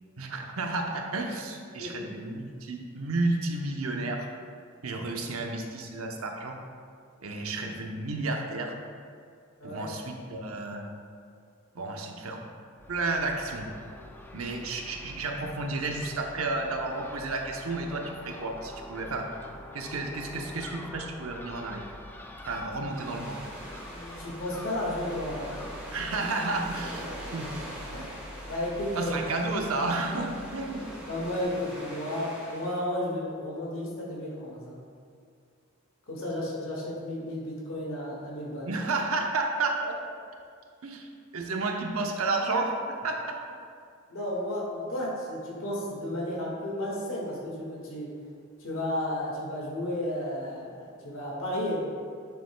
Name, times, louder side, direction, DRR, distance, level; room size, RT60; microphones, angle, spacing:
voice 1, 0.2-4.3 4.8-6.6 7.2-8.7 9.6-10.9 11.7-12.4 12.9-13.7 14.3-19.3 19.7-21.9 22.5-23.4 25.9-27.1 27.3-27.5 28.9-30.8 38.6-39.9 40.8-43.4, right 3 dB, 90° right, 2 dB, 0.8 m, -31 dB
voice 2, 1.8-2.1 9.6-9.8 23.9-25.6 27.9-29.2 31.1-34.8 36.1-38.7 44.1-48.1 48.6-51.8, left 1 dB, 75° left, -4 dB, 1.8 m, -33 dB
Crow / Gull seagull, 12.8-31.4, left 1 dB, 10° left, 0.4 m, -46 dB
sound 1, 22.8-32.8, equal, 5° right, 1.6 m, -43 dB
9.4 x 6.8 x 2.3 m, 2.2 s
head